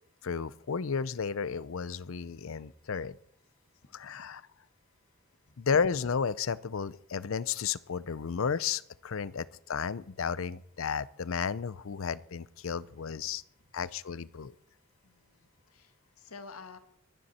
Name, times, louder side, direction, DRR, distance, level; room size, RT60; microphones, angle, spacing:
voice 1, 0.2-3.2 3.9-4.4 5.6-13.4 13.7-14.5, left 6 dB, 70° left, 19 dB, 0.5 m, -33 dB
voice 2, 3.8-4.3 5.5-5.6 15.0-16.8, left 4 dB, 90° left, 9 dB, 1.5 m, -51 dB
23.5 x 9.5 x 4.3 m, 0.66 s
head